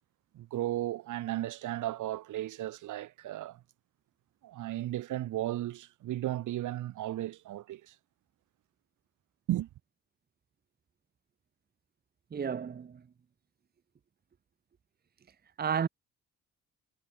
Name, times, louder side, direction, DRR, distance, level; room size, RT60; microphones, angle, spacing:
voice 1, 0.3-3.6 4.4-8.0 9.5-9.7, right 14 dB, 80° right, 2.0 m, -35 dB
voice 2, 12.3-13.0 15.6-15.9, right 7 dB, 30° right, 0.9 m, -32 dB
cardioid pair, 90°, 30 cm